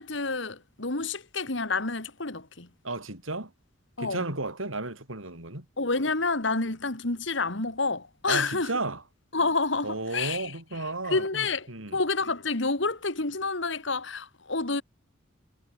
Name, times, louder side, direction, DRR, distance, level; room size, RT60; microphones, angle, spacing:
voice 1, 0.0-2.7 4.0-4.3 5.8-8.7 9.3-10.5 11.1-14.8, left 3 dB, 65° left, 2.4 m, -29 dB
voice 2, 2.8-3.5 4.0-5.7 8.3-9.0 9.8-12.0, right 2 dB, 90° right, 6.7 m, -33 dB
head